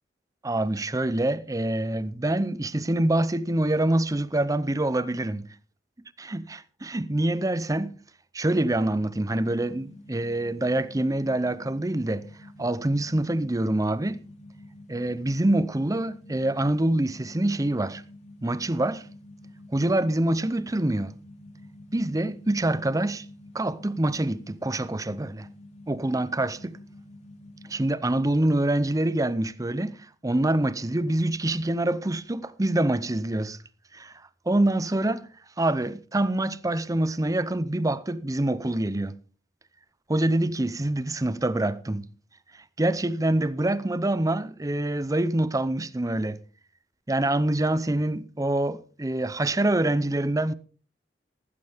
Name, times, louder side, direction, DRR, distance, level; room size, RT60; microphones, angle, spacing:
voice 1, 0.4-5.5 6.3-8.0 8.3-12.2 12.6-14.2 14.9-18.0 18.4-19.0 19.7-21.1 21.9-23.2 23.5-25.5 25.9-26.8 27.7-33.6 33.9-34.1 34.5-35.3 35.6-39.2 40.1-42.1 42.8-46.4 47.1-50.5, right 1 dB, 20° right, 0.6 m, -25 dB
sound 1, 9.3-27.8, left 1 dB, 40° left, 2.9 m, -48 dB
15.0 x 12.5 x 3.5 m
head